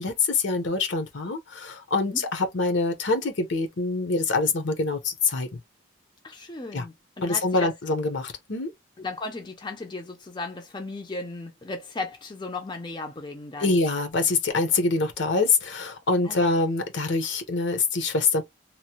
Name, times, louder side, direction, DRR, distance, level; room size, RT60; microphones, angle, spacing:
voice 1, 0.0-5.5 6.7-6.8 7.2-8.7 13.6-18.4, left 3 dB, 70° left, 0.9 m, -25 dB
voice 2, 6.2-7.7 9.0-13.8 16.2-16.6, left 2 dB, 25° left, 0.5 m, -36 dB
3.0 x 2.1 x 2.9 m
head